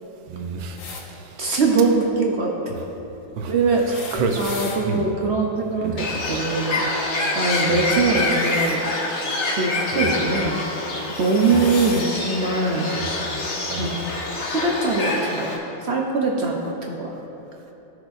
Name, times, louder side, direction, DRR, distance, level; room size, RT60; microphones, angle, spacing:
voice 1, 0.3-1.5 3.4-3.5 4.1-5.1 5.8-6.1 7.7-7.9 9.9-10.1 11.4-11.7 12.9-13.1 13.7-14.0, right 4 dB, 85° right, 4 dB, 1.6 m, -30 dB
sound 1, 0.8-1.1 3.7-4.8 8.0-8.8 10.2-10.4 11.0-12.1 13.1-13.2 14.4-14.5, left 3 dB, 90° left, 1.7 m, -37 dB
voice 2, 1.4-2.8 3.5-6.8 7.3-8.8 9.5-10.8 11.2-12.9 13.8-13.9 14.5-17.1, right 3 dB, 60° right, 0 dB, 0.7 m, -22 dB
Bird, 6.0-15.6, left 2 dB, 45° left, 1.0 m, -26 dB
16.0 x 6.2 x 2.6 m, 3.0 s
omnidirectional pair, 2.1 m